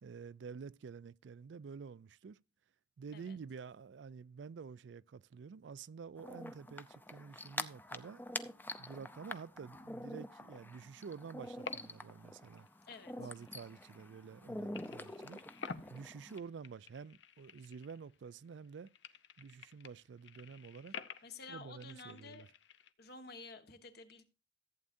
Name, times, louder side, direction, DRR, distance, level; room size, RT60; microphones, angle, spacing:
voice 1, 0.0-2.4 3.0-8.2 8.8-12.7 13.2-15.4 15.9-18.9 19.4-20.9 21.5-22.5, right 5 dB, 80° right, 0.4 m, -49 dB
sound 1, 6.2-16.4, left 1 dB, 10° left, 0.6 m, -46 dB
sound 2, 11.4-12.2 12.5-14.4 14.7-18.3 18.6-22.9, left 5 dB, 80° left, 0.7 m, -51 dB
voice 2, 12.8-13.3 21.2-22.4 23.0-24.2, left 4 dB, 60° left, 1.3 m, -51 dB
14.5 x 8.5 x 2.6 m
head